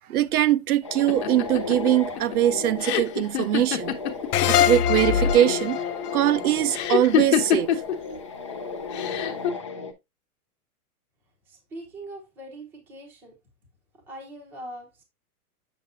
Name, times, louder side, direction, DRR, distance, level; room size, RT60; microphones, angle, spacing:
voice 1, 0.1-4.0 4.5-5.8 6.1-7.7, right 12 dB, 70° right, 0.6 m, -22 dB
sound 1, 0.8-9.9, left 5 dB, 20° left, 0.4 m, -35 dB
sound 2, 1.1-4.7 4.9-5.6 6.7-7.9 8.9-9.5, left 9 dB, 45° left, 1.1 m, -25 dB
sound 3, 4.3-7.6, left 9 dB, 75° left, 0.8 m, -24 dB
voice 2, 11.5-13.4 14.1-15.0, right 1 dB, 5° right, 0.7 m, -41 dB
7.5 x 6.8 x 2.5 m
supercardioid pair, 180°, 46 cm